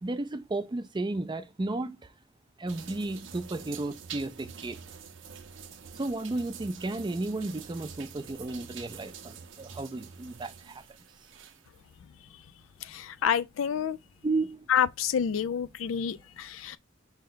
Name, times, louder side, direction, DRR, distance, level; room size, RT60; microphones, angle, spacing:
voice 1, 0.0-2.1 2.6-4.8 5.9-10.8 14.2-14.7, right 2 dB, 25° right, 0.4 m, -33 dB
sound 1, 2.7-11.8, right 6 dB, 70° right, 0.6 m, -46 dB
voice 2, 12.8-14.0 14.7-16.8, left 8 dB, 90° left, 0.4 m, -28 dB
5.4 x 2.1 x 3.8 m
head